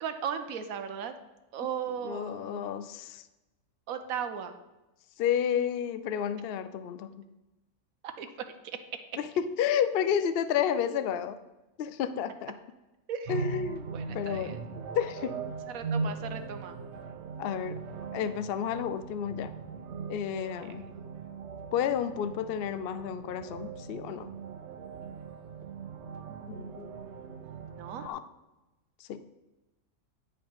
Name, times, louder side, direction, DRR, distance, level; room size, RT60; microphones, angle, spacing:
voice 1, 0.0-1.1 1.5-2.8 3.9-4.6 8.2-8.3 13.1-13.3 13.9-14.6 15.7-16.8 26.3-28.0, right 7 dB, 85° right, 8 dB, 1.1 m, -37 dB
voice 2, 2.0-3.2 5.2-7.2 9.2-11.4 11.8-12.5 13.3-13.9 14.1-14.6 14.9-15.4 17.4-17.8 18.1-19.5 20.1-20.9 21.7-24.3 26.5-27.0 27.3-27.4 28.0-28.2 29.0-29.4, left 8 dB, 65° left, 12 dB, 0.6 m, -31 dB
sound 1, 13.2-28.1, right 4 dB, 65° right, 0.9 m, -40 dB
8.7 x 5.3 x 5.7 m, 1.0 s
omnidirectional pair, 1.4 m